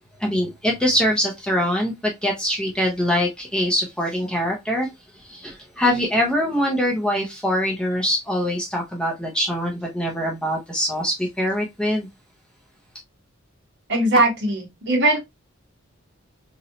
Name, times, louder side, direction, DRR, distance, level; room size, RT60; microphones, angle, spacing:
voice 1, 0.2-4.9 5.1-12.1, equal, 5° left, 0.8 m, -23 dB
voice 2, 13.9-15.2, right 2 dB, 55° right, 1.2 m, -19 dB
3.1 x 2.7 x 2.8 m
head